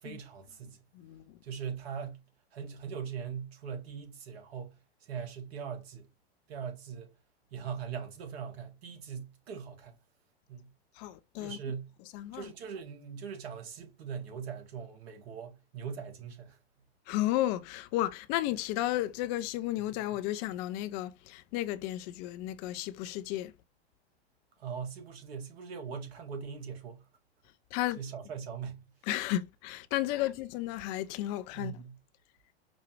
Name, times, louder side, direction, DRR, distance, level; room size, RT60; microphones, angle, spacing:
voice 1, 0.0-0.8 1.4-2.2 2.5-6.1 6.5-7.1 7.5-9.9 10.5-10.7 11.4-11.9 12.3-16.6 24.6-27.0 28.0-28.8 31.5-32.0, right 7 dB, 70° right, 1.5 m, -41 dB
voice 2, 0.9-1.4 10.9-11.7 12.1-12.5 17.1-23.5 27.7-28.0 29.0-31.7, left 14 dB, 40° left, 0.4 m, -33 dB
5.0 x 2.3 x 3.0 m
hypercardioid pair, 105°, 32 cm